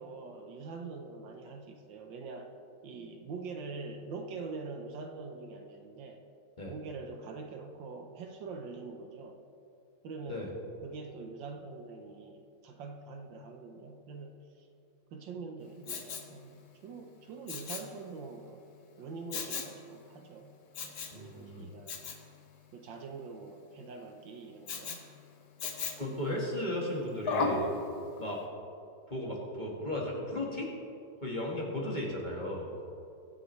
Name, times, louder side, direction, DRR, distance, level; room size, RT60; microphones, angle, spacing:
voice 1, 0.0-2.5 2.8-6.2 6.7-9.4 10.0-14.7 15.1-18.7 19.0-20.6 20.8-22.0 22.7-25.0 26.2-26.4, right 4 dB, 70° right, 4 dB, 1.5 m, -44 dB
Respiratory sounds, 15.8-16.3 17.5-17.9 19.3-19.8 20.7-21.2 21.9-22.2 24.7-25.0 25.6-26.1 27.3-27.7 28.2-28.3, left 4 dB, 55° left, 1.4 m, -35 dB
voice 2, 21.1-21.7 26.0-27.7 28.2-28.4 29.1-30.7 31.2-32.7, left 1 dB, 25° left, -3 dB, 1.6 m, -35 dB
22.0 x 7.7 x 3.2 m, 2.6 s
omnidirectional pair, 2.1 m